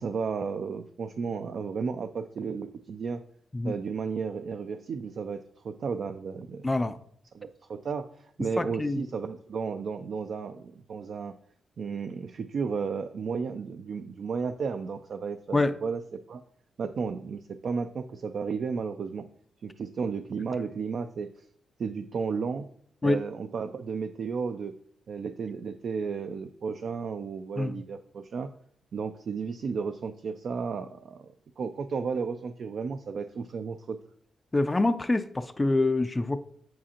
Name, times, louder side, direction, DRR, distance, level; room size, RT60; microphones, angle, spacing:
voice 1, 0.0-3.2 3.6-6.7 7.3-11.3 11.8-16.0 16.3-16.4 16.8-19.2 19.6-21.4 21.8-22.7 23.0-24.7 25.1-28.5 28.9-34.0, right 5 dB, 55° right, 9 dB, 0.4 m, -33 dB
voice 2, 6.6-7.0 8.6-9.0 15.5-15.7 23.0-23.2 27.6-27.8 34.5-36.4, left 2 dB, 15° left, 10 dB, 0.3 m, -25 dB
7.4 x 7.2 x 2.8 m, 0.63 s
cardioid pair, 125°, 0 cm